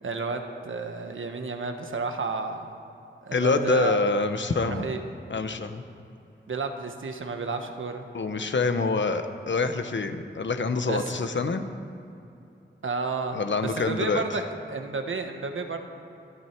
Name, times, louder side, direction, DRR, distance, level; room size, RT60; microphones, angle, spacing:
voice 1, 0.0-2.7 3.2-4.0 4.7-5.0 6.5-8.0 10.9-11.1 12.8-14.4 14.7-15.8, right 4 dB, 90° right, 5 dB, 1.3 m, -31 dB
voice 2, 3.3-4.9 5.3-5.8 8.1-11.7 13.3-14.2, left 3 dB, 70° left, 8 dB, 1.1 m, -26 dB
25.0 x 9.8 x 4.6 m, 2.8 s
wide cardioid pair, 75°, 20 cm